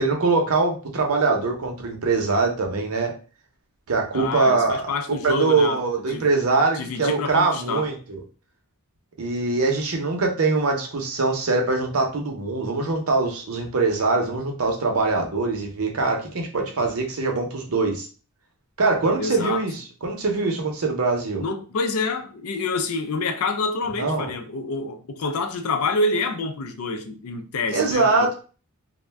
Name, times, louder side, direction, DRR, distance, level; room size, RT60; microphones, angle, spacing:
voice 1, 0.0-3.1 3.9-8.2 9.2-18.1 18.8-21.4 24.0-24.3 27.7-28.3, right 3 dB, 70° right, 0.7 m, -23 dB
voice 2, 4.1-5.8 6.1-6.3 6.7-7.9 19.2-19.6 21.4-28.3, left 3 dB, 70° left, 0.4 m, -27 dB
2.4 x 2.1 x 3.2 m
head